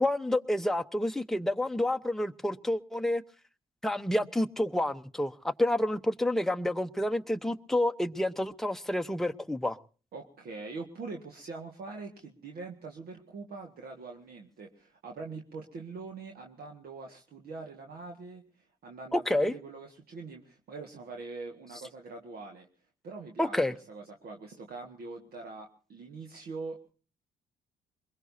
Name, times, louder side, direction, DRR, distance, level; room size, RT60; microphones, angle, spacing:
voice 1, 0.0-3.2 3.8-9.8 19.1-19.5 23.4-23.7, left 1 dB, ahead, 0.9 m, -29 dB
voice 2, 10.1-22.7 23.0-26.9, right 3 dB, 60° right, 1.8 m, -43 dB
23.0 x 21.5 x 2.8 m
hypercardioid pair, 55°, 18 cm